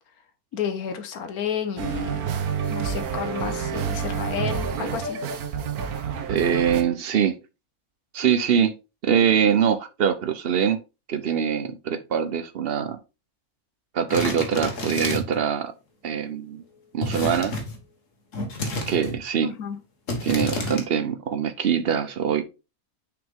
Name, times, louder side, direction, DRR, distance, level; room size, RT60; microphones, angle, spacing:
voice 1, 0.5-2.2 2.7-5.2 19.4-19.8, left 7 dB, 85° left, 1.5 m, -31 dB
sound 1, 1.8-6.8, right 7 dB, 90° right, 1.4 m, -28 dB
voice 2, 6.3-7.4 8.1-8.7 9.0-10.8 11.1-13.0 13.9-15.7 16.0-16.6 16.9-17.5 18.9-19.5 20.2-22.4, right 8 dB, 55° right, 0.8 m, -23 dB
sound 2, 14.1-15.4 17.0-17.8 18.3-19.2 20.1-20.8, left 2 dB, 60° left, 1.7 m, -30 dB
6.2 x 5.0 x 3.5 m
omnidirectional pair, 1.5 m